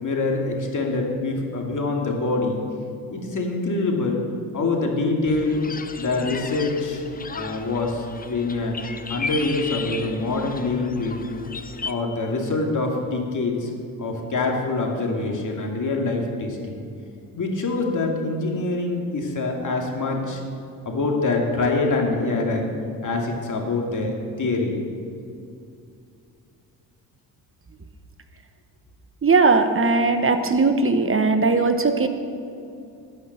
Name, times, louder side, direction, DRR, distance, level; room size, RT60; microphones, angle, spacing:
voice 1, 0.0-2.6 3.1-4.2 4.5-5.6 6.0-7.0 7.3-8.8 9.1-11.2 11.9-13.7 14.0-16.8 17.3-20.4 20.9-22.7 23.0-24.8, left 3 dB, 40° left, 0 dB, 2.5 m, -25 dB
sound 1, 5.3-11.9, left 4 dB, 20° left, 0.7 m, -35 dB
voice 2, 29.2-32.1, right 3 dB, 25° right, 8 dB, 1.0 m, -19 dB
12.0 x 5.9 x 7.8 m, 2.6 s
hypercardioid pair, 55°, 49 cm